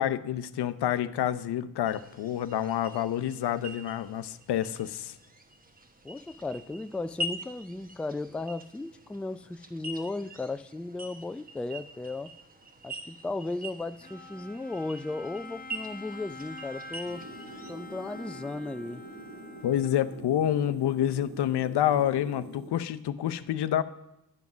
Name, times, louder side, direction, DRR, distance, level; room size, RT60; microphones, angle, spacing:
voice 1, 0.0-5.2 19.6-23.8, left 11 dB, 75° left, 0.7 m, -28 dB
sound 1, 1.8-17.7, equal, 20° right, 1.4 m, -44 dB
voice 2, 6.0-12.4 12.8-17.3 17.7-19.0, left 2 dB, 5° left, 0.3 m, -35 dB
Bowed string instrument, 14.0-20.4, left 2 dB, 20° left, 0.9 m, -46 dB
sound 2, 17.1-22.7, right 1 dB, 65° right, 3.3 m, -45 dB
11.0 x 7.1 x 6.1 m
supercardioid pair, 55°, 41 cm